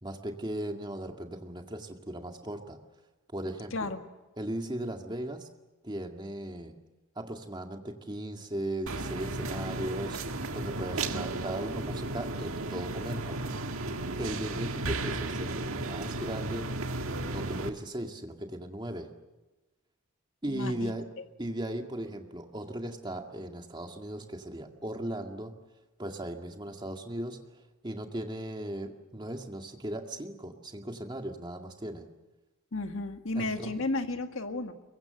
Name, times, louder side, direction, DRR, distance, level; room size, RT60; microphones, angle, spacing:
voice 1, 0.0-2.8 3.3-3.9 4.4-5.5 5.8-6.7 7.2-10.2 10.5-13.4 14.2-16.7 17.2-19.1 20.4-21.0 21.4-25.5 26.0-27.4 27.8-32.1 33.3-33.8, right 1 dB, 20° right, 4 dB, 2.1 m, -37 dB
voice 2, 3.7-4.0 20.5-21.0 32.7-34.7, left 2 dB, 60° left, 6 dB, 2.0 m, -33 dB
sound 1, 8.9-17.7, right 2 dB, 70° right, 1.7 m, -34 dB
23.0 x 23.0 x 7.9 m, 1.1 s
head